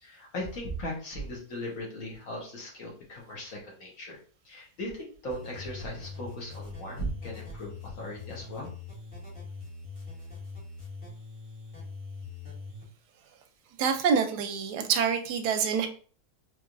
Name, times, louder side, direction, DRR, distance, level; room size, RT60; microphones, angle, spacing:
voice 1, 0.0-4.2 4.4-8.7, equal, 60° left, -1 dB, 1.4 m, -38 dB
sound 1, 5.3-12.8, left 4 dB, 40° left, 1.9 m, -42 dB
voice 2, 13.8-15.9, right 6 dB, 90° right, 6 dB, 1.2 m, -26 dB
3.8 x 3.1 x 2.5 m, 0.41 s
omnidirectional pair, 1.7 m